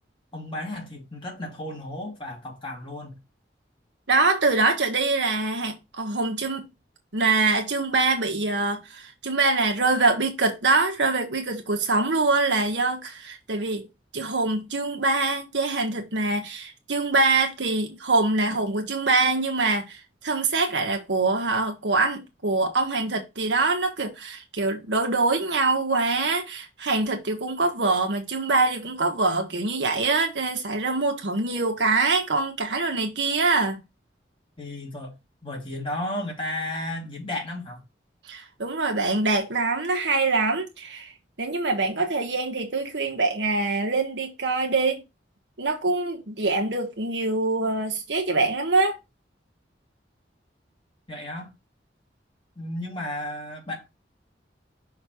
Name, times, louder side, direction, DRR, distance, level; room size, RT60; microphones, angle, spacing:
voice 1, 0.3-3.2 34.6-35.2 35.4-37.8 51.1-51.5 52.6-53.8, left 1 dB, 30° left, 2.4 m, -33 dB
voice 2, 4.1-6.6 7.1-13.9 14.1-33.8 38.3-41.1 41.4-45.0 45.6-49.0, right 3 dB, 70° right, 1.4 m, -24 dB
5.8 x 3.3 x 5.7 m
head